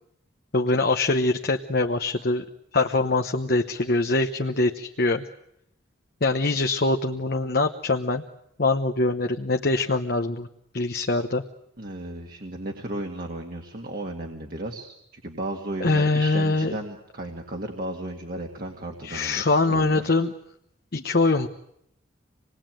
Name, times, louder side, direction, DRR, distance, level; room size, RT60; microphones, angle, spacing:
voice 1, 0.5-2.4 2.7-5.2 6.2-8.2 8.6-10.5 10.7-11.4 15.8-16.7 19.0-20.3 20.9-21.5, left 2 dB, 50° left, 5 dB, 1.1 m, -23 dB
voice 2, 11.8-20.1, right 1 dB, 45° right, 2 dB, 2.1 m, -35 dB
26.5 x 20.5 x 9.1 m, 0.77 s
head